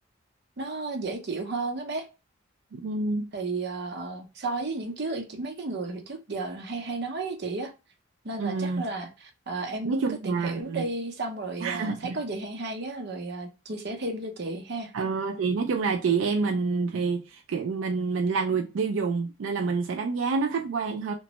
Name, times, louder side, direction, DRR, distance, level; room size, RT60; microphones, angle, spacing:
voice 1, 0.6-2.1 3.3-7.7 8.2-14.9, right 3 dB, 60° right, 0.7 m, -33 dB
voice 2, 2.7-3.3 8.4-8.9 9.8-10.8 11.6-12.2 14.9-21.1, right 4 dB, 90° right, 0.4 m, -27 dB
3.0 x 2.2 x 2.8 m
head